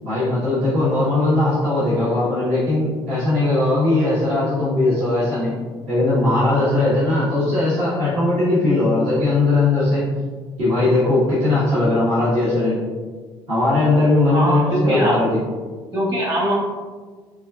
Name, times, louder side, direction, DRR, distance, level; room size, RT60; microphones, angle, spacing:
voice 1, 0.0-5.5 5.9-10.0 10.6-12.8 13.5-15.4, left 2 dB, 65° right, -11 dB, 1.3 m, -19 dB
voice 2, 14.3-15.2 15.9-16.5, equal, 40° right, -4 dB, 1.4 m, -21 dB
4.0 x 2.5 x 2.3 m, 1.5 s
hypercardioid pair, 70°, 12 cm